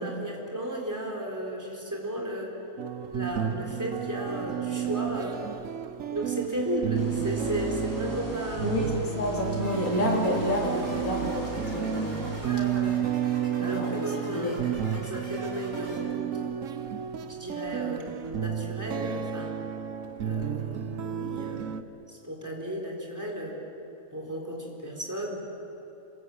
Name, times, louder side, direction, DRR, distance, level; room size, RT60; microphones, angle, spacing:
voice 1, 0.0-2.5 3.1-5.4 6.1-8.8 12.4-13.0 13.6-16.4 17.3-19.6 20.2-21.7 22.1-23.6 24.1-25.4, equal, 10° right, -2 dB, 4.1 m, -34 dB
sound 1, 2.8-21.8, right 9 dB, 65° right, 1.2 m, -32 dB
sound 2, 7.0-12.5, right 1 dB, 15° left, 4.0 m, -38 dB
voice 2, 8.6-12.5 13.6-14.6, equal, 75° left, -3 dB, 4.1 m, -29 dB
sound 3, 9.6-16.0, right 1 dB, 50° right, 6.1 m, -45 dB
28.0 x 21.5 x 8.5 m, 2.9 s
omnidirectional pair, 1.5 m